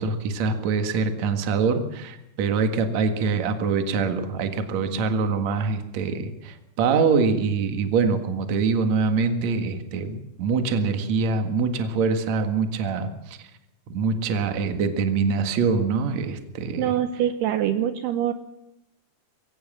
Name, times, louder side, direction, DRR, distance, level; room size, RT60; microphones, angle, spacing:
voice 1, 0.0-13.4 13.9-16.9, right 5 dB, 50° right, 7 dB, 2.4 m, -24 dB
voice 2, 16.8-18.3, right 11 dB, 75° right, 9 dB, 2.7 m, -24 dB
22.0 x 17.0 x 7.3 m, 0.86 s
omnidirectional pair, 5.1 m